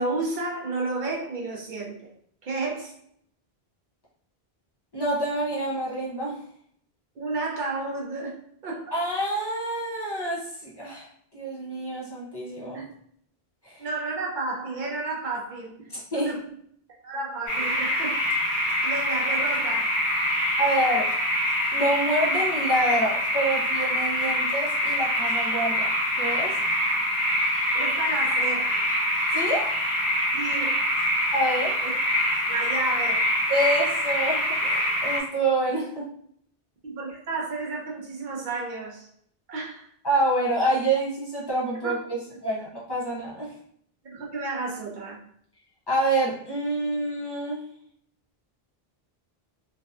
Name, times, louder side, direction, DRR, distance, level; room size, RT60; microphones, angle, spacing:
voice 1, 0.0-2.0 2.4-2.9 7.2-8.4 8.6-8.9 12.7-12.9 13.8-15.7 16.1-16.4 17.0-20.0 27.7-28.7 30.3-30.7 31.8-31.9 32.5-33.3 36.8-39.1 39.5-39.9 41.8-42.0 44.0-45.2, right 3 dB, 60° right, -2 dB, 0.6 m, -32 dB
voice 2, 4.9-6.4 8.9-11.1 11.3-12.8 13.6-13.9 15.9-16.4 20.6-21.1 21.7-25.9 26.2-26.5 29.3-29.7 31.3-31.7 33.5-36.0 40.0-43.5 45.9-47.7, right 1 dB, 30° left, -6 dB, 0.5 m, -27 dB
sound 1, 17.5-35.2, left 1 dB, 50° left, 1.0 m, -25 dB
2.5 x 2.2 x 2.4 m, 0.66 s
omnidirectional pair, 1.0 m